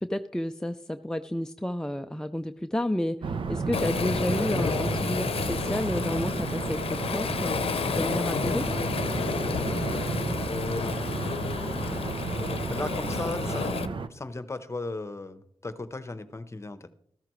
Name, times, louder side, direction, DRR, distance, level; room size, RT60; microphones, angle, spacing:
voice 1, 0.0-8.7, left 1 dB, 5° left, 7 dB, 0.4 m, -31 dB
sound 1, 3.2-14.1, right 4 dB, 60° right, 0.7 m, -32 dB
Waves surf, 3.7-13.9, left 6 dB, 90° left, 0.7 m, -31 dB
voice 2, 10.4-11.0 12.7-13.8 14.1-16.9, left 3 dB, 30° left, 12 dB, 0.9 m, -35 dB
14.0 x 13.0 x 3.1 m, 0.65 s
wide cardioid pair, 100°, 10 cm